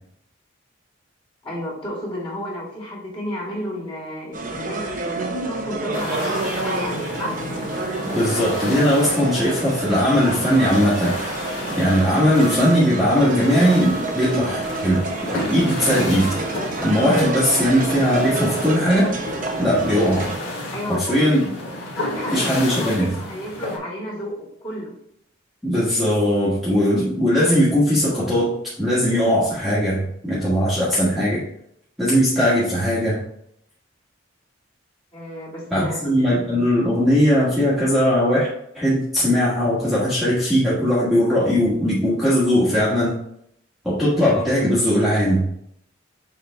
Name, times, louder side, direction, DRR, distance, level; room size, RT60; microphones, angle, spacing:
voice 1, 1.4-7.4 20.7-21.3 22.0-24.9 35.1-36.0, left 1 dB, 25° left, -6 dB, 2.6 m, -32 dB
sound 1, 4.3-20.4, right 2 dB, 40° right, 0.8 m, -28 dB
sound 2, 5.9-23.8, left 1 dB, 80° left, 2.1 m, -32 dB
voice 2, 8.0-11.1 11.8-15.0 15.3-16.3 16.8-19.2 19.6-20.3 20.9-21.5 22.3-23.1 25.6-31.4 32.0-33.2 35.7-38.5 38.7-43.1 43.8-45.5, equal, ahead, -10 dB, 1.5 m, -19 dB
6.7 x 4.2 x 3.4 m, 0.71 s
head